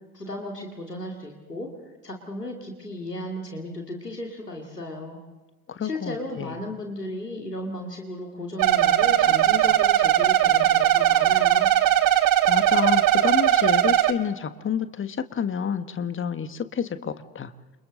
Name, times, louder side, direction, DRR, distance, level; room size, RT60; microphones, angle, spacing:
voice 1, 0.1-1.7 2.0-5.2 5.8-11.7, left 1 dB, 90° left, 1 dB, 2.5 m, -35 dB
voice 2, 5.7-6.5 12.5-17.5, left 7 dB, 25° left, 11 dB, 1.6 m, -29 dB
sound 1, 8.6-14.1, right 11 dB, 45° right, 1.5 m, -19 dB
29.0 x 27.0 x 4.0 m, 1.2 s
figure-of-eight pair, 60°, 46 cm